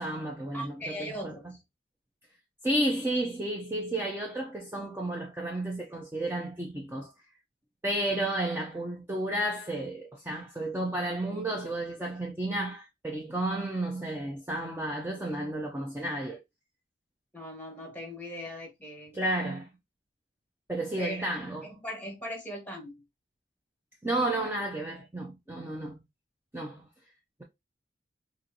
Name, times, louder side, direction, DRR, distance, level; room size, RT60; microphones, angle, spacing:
voice 1, 0.0-1.3 2.6-7.1 7.8-16.4 19.1-19.7 20.7-21.8 24.0-26.0 26.5-26.9, right 1 dB, 10° right, 0.5 m, -32 dB
voice 2, 0.5-1.4 17.3-19.1 21.0-21.2 21.6-23.0, equal, 10° left, 1.5 m, -39 dB
4.3 x 2.6 x 2.6 m
head